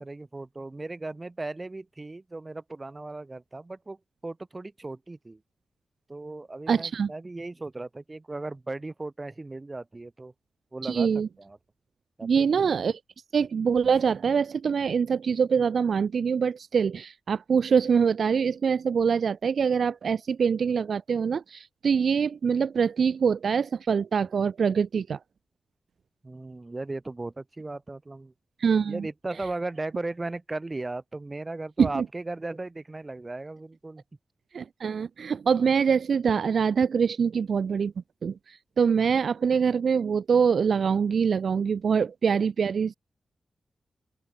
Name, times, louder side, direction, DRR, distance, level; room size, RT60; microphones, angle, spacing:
voice 1, 0.0-5.4 6.1-10.3 10.7-11.1 11.4-11.6 12.2-12.5 26.2-28.3 28.9-34.0, right 2 dB, 20° right, 3.2 m, -36 dB
voice 2, 6.7-7.1 10.8-11.3 12.2-13.0 13.3-25.2 28.6-29.1 31.8-32.0 34.5-37.9 38.2-42.9, right 6 dB, 65° right, 0.8 m, -24 dB
open air
wide cardioid pair, 130°, 0 cm